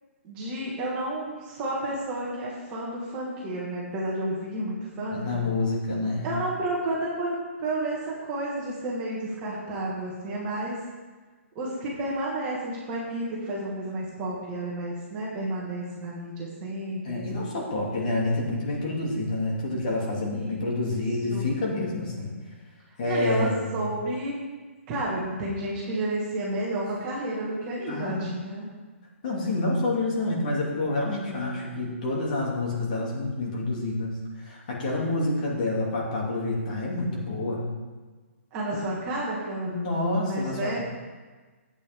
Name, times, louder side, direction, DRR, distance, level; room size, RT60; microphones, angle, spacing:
voice 1, 0.2-5.4 6.2-10.8 11.6-17.3 20.3-20.7 21.3-21.5 23.0-24.3 24.9-28.7 38.5-39.8 40.3-40.8, right 1 dB, 15° right, -5 dB, 1.8 m, -31 dB
voice 2, 5.1-6.3 17.0-22.3 23.0-23.8 27.9-28.3 29.2-37.6 39.6-40.8, left 2 dB, 35° left, -3 dB, 2.7 m, -28 dB
13.0 x 8.8 x 3.7 m, 1.3 s
hypercardioid pair, 175°, 7 cm